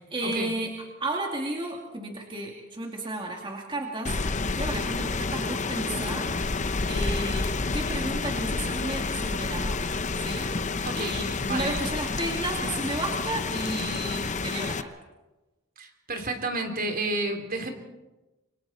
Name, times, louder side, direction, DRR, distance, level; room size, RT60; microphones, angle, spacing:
voice 1, 0.1-0.7 1.0-7.5 7.7-9.8 10.1-10.5 10.9-14.9, right 1 dB, 25° right, 0 dB, 2.6 m, -33 dB
Rain, 4.0-14.8, left 3 dB, 35° left, 0.8 m, -29 dB
voice 2, 10.8-11.7 15.8-17.7, right 2 dB, 45° right, 4 dB, 3.4 m, -31 dB
28.0 x 25.0 x 4.3 m, 1.1 s
head